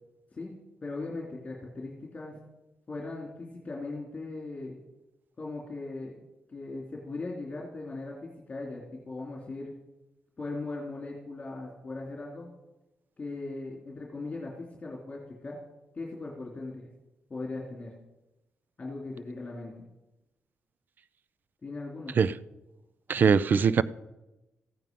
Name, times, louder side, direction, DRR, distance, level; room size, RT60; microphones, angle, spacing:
voice 1, 0.8-2.4 2.9-4.8 5.4-6.1 6.5-9.7 10.4-12.5 13.2-15.6 15.9-16.9 17.3-17.9 18.8-19.9 21.6-22.2, left 3 dB, 30° left, 3.1 m, -39 dB
voice 2, 23.1-23.8, right 6 dB, 50° right, 0.5 m, -21 dB
15.0 x 9.2 x 5.3 m
cardioid pair, 95°, 4 cm